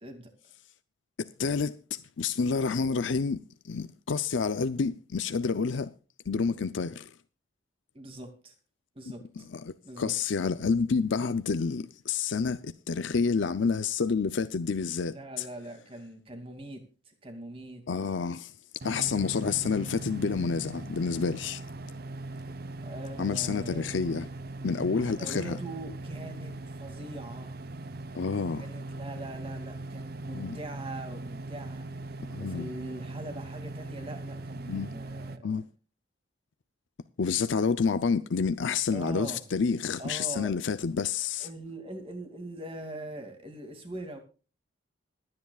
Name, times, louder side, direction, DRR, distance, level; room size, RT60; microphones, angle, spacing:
voice 1, 1.2-5.9 6.3-7.1 9.4-15.4 17.9-18.5 18.8-21.6 23.2-24.3 24.6-25.6 28.1-28.6 30.3-30.6 32.3-32.7 34.7-34.9 35.4-35.6 37.2-41.5, left 5 dB, 70° left, 0.5 m, -29 dB
voice 2, 7.9-8.5 8.9-9.5 9.8-10.1 15.1-17.8 22.8-23.9 25.0-27.6 28.6-31.8 32.4-35.6 38.9-39.4 40.0-40.5 41.4-44.2, right 1 dB, 30° right, 2.5 m, -42 dB
sound 1, 18.8-35.4, right 2 dB, 50° right, 0.8 m, -40 dB
25.5 x 9.7 x 2.4 m
head